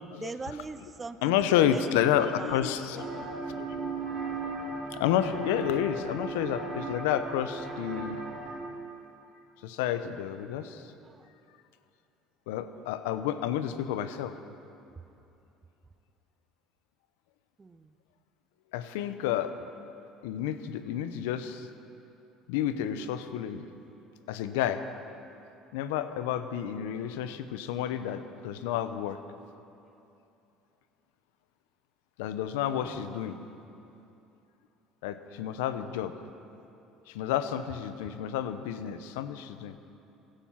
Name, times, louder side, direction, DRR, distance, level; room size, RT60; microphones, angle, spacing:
voice 1, 0.2-2.6 11.0-11.3 17.6-17.9 32.6-33.1, right 4 dB, 25° right, 13 dB, 0.6 m, -42 dB
voice 2, 1.2-3.1 3.5-3.7 4.9-8.2 9.6-10.8 12.5-14.4 18.7-19.5 20.2-21.7 22.5-23.7 24.3-24.8 25.7-29.2 32.2-33.3 35.0-36.1 37.1-39.8, left 10 dB, 85° left, 11 dB, 0.7 m, -30 dB
sound 1, 3.0-8.6, right 3 dB, 45° right, 3.8 m, -36 dB
16.0 x 11.5 x 5.8 m, 2.8 s
supercardioid pair, 90°, 0 cm